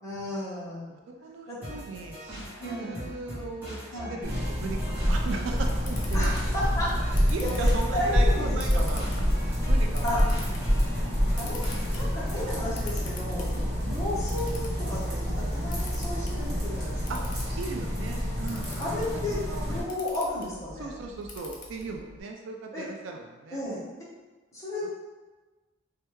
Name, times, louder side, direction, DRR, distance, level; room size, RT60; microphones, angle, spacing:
voice 1, 0.0-0.9 1.5-1.6 2.6-3.0 3.9-4.2 6.1-8.9 10.0-10.2 11.4-11.7 11.9-17.2 18.8-21.0 22.7-22.9 23.5-23.8 24.5-24.9, left 1 dB, 15° left, -9 dB, 0.9 m, -33 dB
voice 2, 0.9-3.8 4.1-6.3 7.3-10.3 13.8-14.0 16.4-16.6 17.1-17.2 17.6-19.0 19.3-19.7 20.7-23.6, right 3 dB, 65° right, 2 dB, 0.3 m, -38 dB
sound 1, 1.6-12.3, equal, 10° right, 0.8 m, -41 dB
sound 2, 4.2-19.8, equal, 50° right, 1.1 m, -27 dB
Camera, 5.5-22.2, left 3 dB, 40° left, 0.5 m, -47 dB
3.2 x 2.2 x 3.0 m, 1.2 s
head